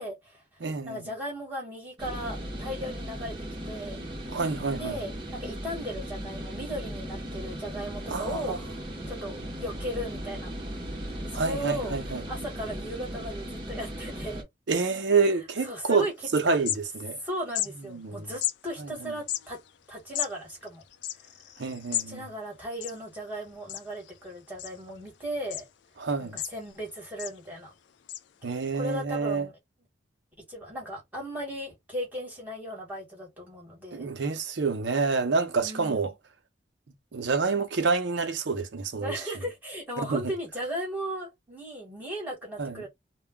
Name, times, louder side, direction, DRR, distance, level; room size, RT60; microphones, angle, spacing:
voice 1, 0.0-3.4 3.6-4.0 4.8-8.6 9.1-10.5 11.3-14.5 15.6-16.1 16.5-16.6 17.2-19.6 19.9-20.8 21.9-25.6 26.2-27.7 28.7-29.6 30.5-34.1 35.6-36.1 39.0-42.9, equal, 10° right, 1.1 m, -36 dB
voice 2, 0.6-1.0 4.3-5.0 8.1-8.6 11.3-12.2 14.7-16.0 16.3-17.2 17.9-18.3 18.8-19.1 21.6-22.2 26.0-26.4 28.4-29.5 33.9-36.1 37.1-39.2 40.0-40.2 42.6-42.8, right 4 dB, 70° right, 0.6 m, -28 dB
sound 1, 2.0-14.4, equal, 25° right, 0.7 m, -37 dB
sound 2, 16.1-16.2 16.4-17.2 17.5-17.7 18.4-18.6 19.2-22.1 22.4-22.5 22.7-23.4 23.7-24.1 24.6-25.1 25.5-25.7 26.1-26.8 27.2-27.4 28.1-28.2, left 12 dB, 65° left, 0.3 m, -33 dB
2.2 x 2.1 x 3.5 m
head